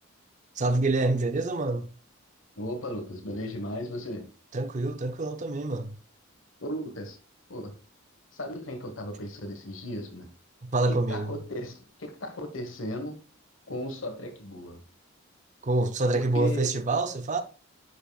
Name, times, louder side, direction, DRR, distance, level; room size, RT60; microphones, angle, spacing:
voice 1, 0.6-1.9 4.5-6.0 10.6-11.3 15.6-17.4, right 2 dB, 35° right, 0.6 m, -26 dB
voice 2, 2.6-4.3 6.6-7.2 7.5-7.8 8.3-10.3 10.9-13.2 13.7-14.8 16.1-16.7, equal, 70° left, 1.3 m, -36 dB
10.0 x 5.4 x 2.3 m
head